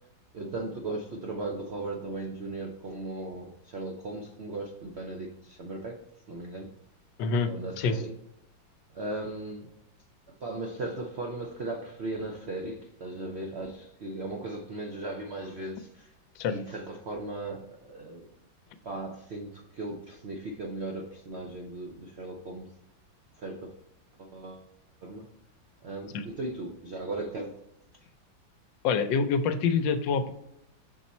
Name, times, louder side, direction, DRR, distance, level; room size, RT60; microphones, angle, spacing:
voice 1, 0.3-6.0 6.3-6.7 7.5-8.2 8.9-9.7 10.4-16.1 16.5-18.3 18.8-22.7 23.4-23.7 24.2-24.7 25.0-25.3 25.8-27.6 28.0-28.1, right 2 dB, 80° right, 2 dB, 0.6 m, -37 dB
voice 2, 28.8-30.3, left 5 dB, 75° left, 10 dB, 1.3 m, -26 dB
5.9 x 4.0 x 4.2 m, 0.84 s
omnidirectional pair, 2.1 m